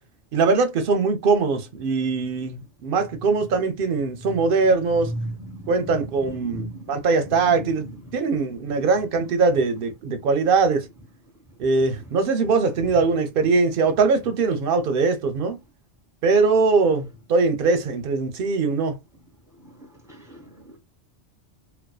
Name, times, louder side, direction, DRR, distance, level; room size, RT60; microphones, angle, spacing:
voice 1, 0.3-5.1 5.7-7.9 8.1-10.9 11.6-15.6 16.2-19.0, right 4 dB, 60° right, 0.7 m, -21 dB
voice 2, 5.2-6.0 6.3-6.8 7.3-7.7 19.6-20.8, equal, 5° right, 0.9 m, -37 dB
2.5 x 2.3 x 2.2 m
omnidirectional pair, 1.2 m